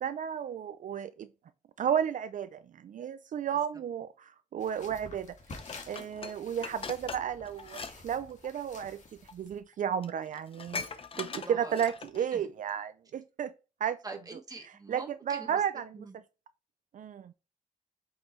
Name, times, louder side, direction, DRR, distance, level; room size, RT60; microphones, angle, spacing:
voice 1, 0.0-1.3 1.8-5.4 5.9-9.0 9.3-13.5 13.8-14.0 14.9-16.1 16.9-17.3, right 8 dB, 70° right, 0.4 m, -33 dB
sound 1, 4.6-9.6, left 3 dB, 60° left, 1.9 m, -50 dB
Dishes pots and pans, 5.5-8.0 8.2-8.5 9.3-9.4 9.7-9.8 10.0-12.3 12.7-12.8, left 5 dB, 45° left, 0.7 m, -41 dB
voice 2, 11.3-11.7 12.3-12.4 14.0-15.6 15.9-16.2, right 3 dB, 25° right, 1.5 m, -44 dB
7.7 x 5.5 x 3.1 m
wide cardioid pair, 145°, 14 cm